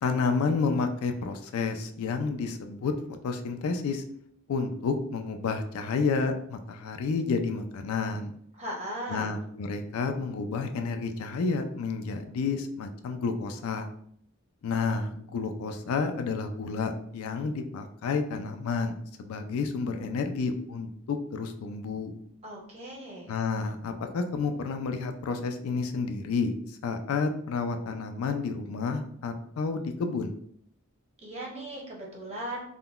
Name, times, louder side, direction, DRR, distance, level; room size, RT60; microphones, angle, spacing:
voice 1, 0.0-2.9 3.2-4.0 4.5-8.3 9.1-13.9 14.6-22.1 23.3-26.5 26.8-30.3, left 4 dB, 80° left, 6 dB, 0.4 m, -30 dB
voice 2, 8.5-9.3 22.4-23.3 31.2-32.6, right 1 dB, 30° right, -3 dB, 0.8 m, -37 dB
3.6 x 2.1 x 2.3 m, 0.67 s
head